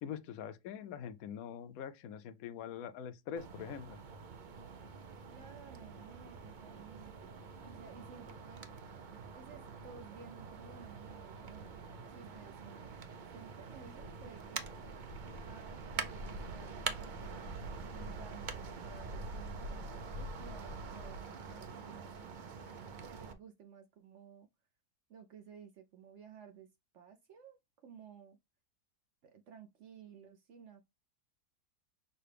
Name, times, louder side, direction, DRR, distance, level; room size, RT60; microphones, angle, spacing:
voice 1, 0.0-4.0, left 8 dB, 70° left, 1.0 m, -44 dB
sound 1, 3.4-23.3, right 4 dB, 80° right, 0.4 m, -45 dB
voice 2, 5.3-8.7 9.3-13.0 13.3-14.7 15.4-17.5 17.9-22.3 22.6-24.5 25.1-28.4 29.2-30.9, right 7 dB, 60° right, 0.8 m, -55 dB
6.5 x 2.2 x 3.3 m
omnidirectional pair, 1.7 m